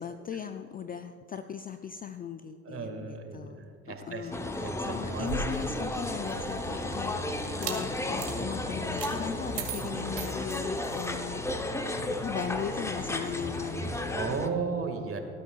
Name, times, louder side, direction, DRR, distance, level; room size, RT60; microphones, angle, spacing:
voice 1, 0.0-11.4 12.2-14.0, left 7 dB, 20° left, 9 dB, 0.4 m, -38 dB
voice 2, 2.6-5.0 5.4-5.5 9.8-10.1 14.1-15.2, right 5 dB, 30° right, 5 dB, 1.9 m, -35 dB
sound 1, 4.3-14.5, left 1 dB, 5° left, 0.8 m, -34 dB
sound 2, 5.1-6.7 7.4-7.8 8.2-8.3 9.0-9.1 9.5-11.1, right 5 dB, 60° right, 2.4 m, -38 dB
sound 3, 6.4-14.1, left 3 dB, 75° left, 1.9 m, -45 dB
19.5 x 13.5 x 2.4 m, 2.6 s
hypercardioid pair, 70°, 41 cm